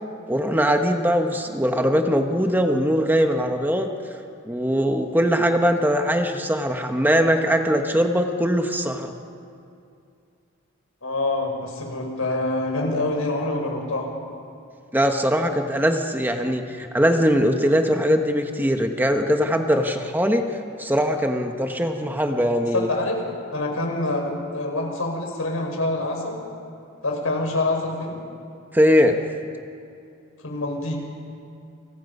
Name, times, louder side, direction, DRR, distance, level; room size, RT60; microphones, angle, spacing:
voice 1, 0.3-3.9 4.4-9.1 14.9-20.5 20.8-22.9 28.7-29.2, equal, 10° right, 5 dB, 1.2 m, -21 dB
voice 2, 11.0-14.0 22.7-23.2 23.5-26.4 27.0-28.2 30.4-30.9, left 2 dB, 85° left, 1 dB, 5.7 m, -26 dB
29.5 x 26.5 x 5.5 m, 2.5 s
head